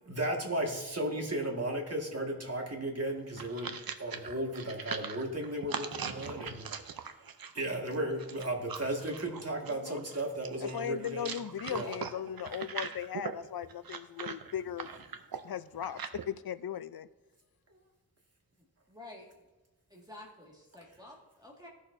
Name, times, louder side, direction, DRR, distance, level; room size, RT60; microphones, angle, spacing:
voice 1, 0.1-3.7 4.0-6.6 7.5-11.3 11.7-12.0, right 1 dB, 40° right, 0 dB, 1.9 m, -35 dB
sound 1, 3.1-16.2, right 6 dB, 70° right, 0.7 m, -41 dB
voice 2, 9.7-10.0 10.6-14.9 15.4-17.1, left 9 dB, 70° left, 13 dB, 0.5 m, -38 dB
voice 3, 18.9-19.3 19.9-21.7, left 1 dB, 10° right, -2 dB, 1.9 m, -50 dB
16.5 x 6.4 x 2.7 m, 1.2 s
wide cardioid pair, 70°, 37 cm